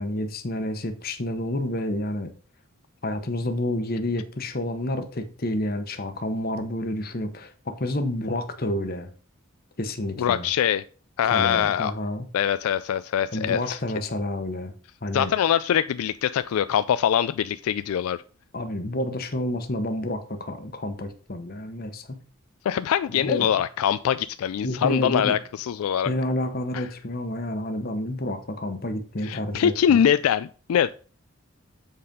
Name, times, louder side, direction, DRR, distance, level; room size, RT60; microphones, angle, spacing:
voice 1, 0.0-2.3 3.0-9.1 9.8-10.5 11.2-12.3 13.3-14.7 15.0-15.3 18.5-22.2 23.1-23.5 24.6-25.4 26.0-30.0, left 1 dB, 45° left, 1.0 m, -29 dB
voice 2, 10.2-10.8 11.2-11.9 12.3-13.8 15.1-18.2 22.6-26.1 26.7-26.8 29.2-30.9, left 9 dB, 80° left, 0.3 m, -23 dB
7.6 x 4.2 x 5.2 m
head